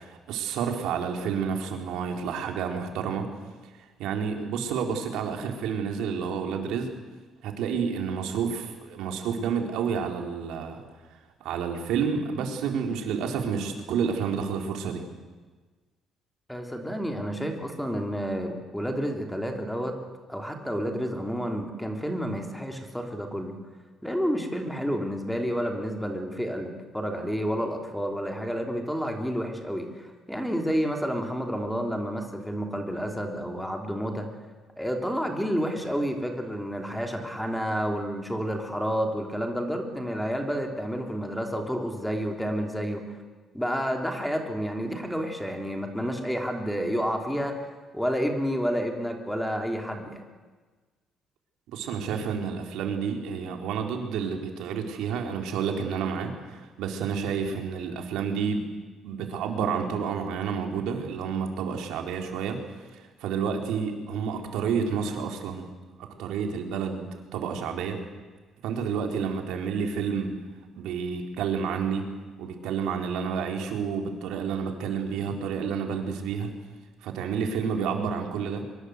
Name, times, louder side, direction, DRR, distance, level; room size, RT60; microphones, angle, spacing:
voice 1, 0.0-3.3 3.6-6.9 7.4-10.8 11.4-15.0 51.7-58.7 59.0-62.6 62.9-65.7 66.0-68.0 68.6-70.4 70.7-72.1 72.4-76.5 77.0-78.6, right 6 dB, 90° right, 3 dB, 4.0 m, -30 dB
voice 2, 16.5-19.9 20.3-23.5 24.0-34.3 34.8-43.2 43.5-47.6 47.9-50.2, equal, ahead, 3 dB, 3.2 m, -30 dB
24.5 x 23.0 x 8.1 m, 1.3 s
cardioid pair, 150°, 0 cm